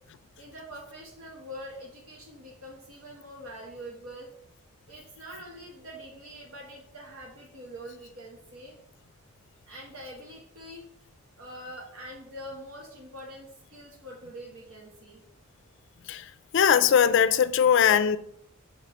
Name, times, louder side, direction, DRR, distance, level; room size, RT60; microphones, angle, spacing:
voice 1, 0.4-4.3 4.9-8.8 9.7-10.9 11.4-15.2, equal, 85° right, 1.1 m, -44 dB
voice 2, 16.5-18.2, left 8 dB, 60° left, 0.3 m, -20 dB
5.6 x 3.2 x 5.2 m
head